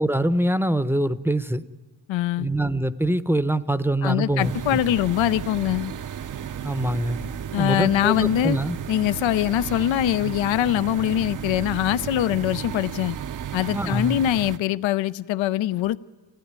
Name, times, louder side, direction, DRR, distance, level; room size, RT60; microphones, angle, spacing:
voice 1, 0.0-1.6 2.4-4.8 6.6-7.2 7.6-8.8 13.7-14.2, right 1 dB, 5° right, 0.7 m, -24 dB
voice 2, 2.1-2.5 4.0-5.9 7.5-8.6 8.9-13.2 13.5-16.0, left 13 dB, 70° left, 0.7 m, -23 dB
sound 1, 4.4-14.6, right 9 dB, 40° right, 0.6 m, -34 dB
26.0 x 15.5 x 9.5 m
cardioid pair, 70°, 48 cm